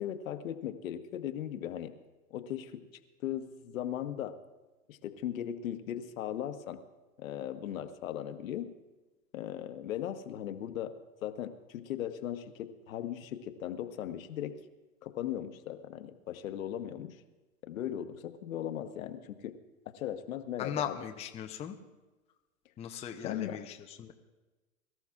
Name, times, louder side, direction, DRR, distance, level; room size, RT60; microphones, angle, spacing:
voice 1, 0.0-1.9 2.3-2.8 3.2-4.3 4.9-6.8 7.2-8.7 9.3-10.9 11.2-14.6 15.0-17.2 17.7-19.6 19.9-21.0 23.2-23.6, left 10 dB, 65° left, 8 dB, 1.2 m, -38 dB
voice 2, 20.6-21.8 22.8-24.1, left 9 dB, 15° left, 4 dB, 0.6 m, -38 dB
23.0 x 13.5 x 2.4 m, 1.2 s
hypercardioid pair, 120°, 43 cm